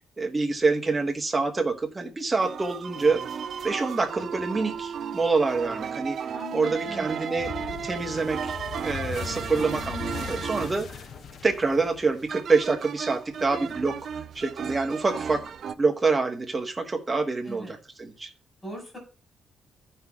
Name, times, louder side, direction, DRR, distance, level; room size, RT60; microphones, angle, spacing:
voice 1, 0.2-3.2 3.6-6.2 6.5-11.0 11.4-14.0 14.3-15.4 15.8-18.3, right 4 dB, 15° right, 1.3 m, -26 dB
sound 1, 2.4-15.7, right 7 dB, 50° right, 0.5 m, -35 dB
voice 2, 6.3-7.3 17.4-17.8 18.6-19.0, left 1 dB, 15° left, 5.3 m, -40 dB
sound 2, 7.4-12.5, left 7 dB, 50° left, 0.4 m, -39 dB
15.5 x 5.6 x 2.4 m
cardioid pair, 155°, 0 cm